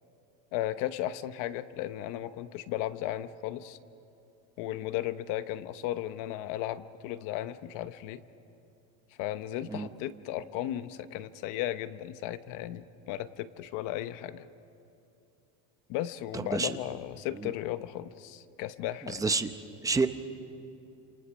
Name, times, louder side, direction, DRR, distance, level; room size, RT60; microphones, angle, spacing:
voice 1, 0.5-3.8 4.6-8.2 9.2-14.5 15.9-19.2, left 13 dB, 55° left, 12 dB, 1.0 m, -35 dB
voice 2, 16.3-16.7 17.4-17.5 19.1-19.5 19.8-20.1, right 4 dB, 10° right, 8 dB, 0.7 m, -28 dB
29.5 x 28.0 x 6.3 m, 2.8 s
cardioid pair, 165°, 37 cm